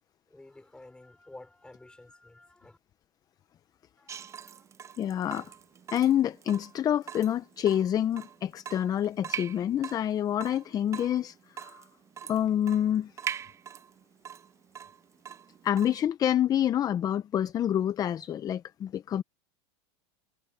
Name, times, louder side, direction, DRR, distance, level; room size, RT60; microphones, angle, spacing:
voice 1, 0.3-2.8 4.0-4.7, left 2 dB, 5° left, 4.2 m, -52 dB
Water tap faucet / Drip, 4.1-16.1, right 8 dB, 20° right, 0.6 m, -42 dB
voice 2, 5.0-5.5 5.9-11.8 12.3-13.1 15.6-19.2, left 10 dB, 25° left, 0.7 m, -27 dB
supercardioid pair, 130°, 15 cm